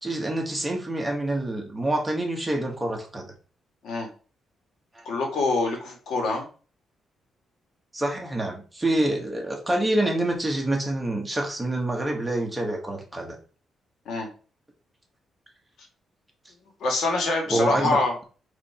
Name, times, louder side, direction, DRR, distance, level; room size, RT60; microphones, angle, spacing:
voice 1, 0.0-3.3 4.9-5.1 7.9-13.4 17.5-18.0, right 1 dB, 10° right, 1 dB, 1.6 m, -26 dB
voice 2, 5.0-6.5 14.1-14.3 16.8-18.1, left 3 dB, 75° left, 1 dB, 2.4 m, -25 dB
5.0 x 4.9 x 4.4 m, 0.37 s
cardioid pair, 130°, 0 cm